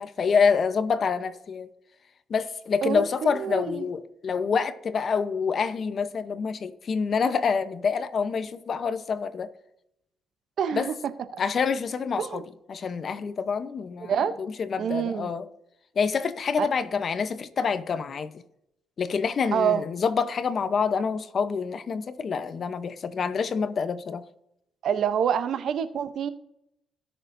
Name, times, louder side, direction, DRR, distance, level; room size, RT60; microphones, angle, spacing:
voice 1, 0.0-1.7 2.3-9.5 10.7-10.9 11.4-12.4 12.7-15.5 16.0-18.4 19.0-24.2, left 5 dB, 50° left, 0.7 m, -27 dB
voice 2, 2.8-3.9 10.6-10.9 11.3-11.4 12.2-12.4 14.1-14.3 14.8-15.3 16.6-16.7 19.5-19.8 24.8-26.3, right 8 dB, 65° right, 0.7 m, -26 dB
17.5 x 6.6 x 2.6 m
cardioid pair, 90°, 0 cm